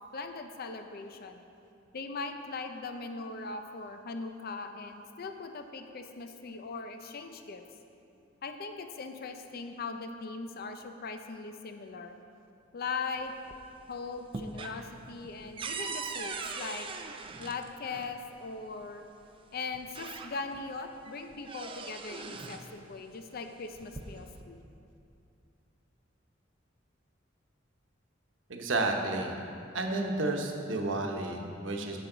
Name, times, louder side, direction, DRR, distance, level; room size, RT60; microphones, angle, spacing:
voice 1, 0.1-1.4 1.9-7.6 8.4-12.1 12.7-13.3 13.9-16.9 17.4-19.0 19.5-24.6, left 4 dB, 50° left, 6 dB, 0.5 m, -40 dB
sound 1, 13.2-13.8 14.1-18.2 19.2-19.3 19.7-20.7 21.1-22.7 23.6-24.4, right 4 dB, 30° right, 0.5 m, -41 dB
voice 2, 28.5-29.4 29.7-32.0, right 2 dB, 85° right, 2 dB, 1.0 m, -31 dB
10.5 x 7.8 x 3.9 m, 2.6 s
head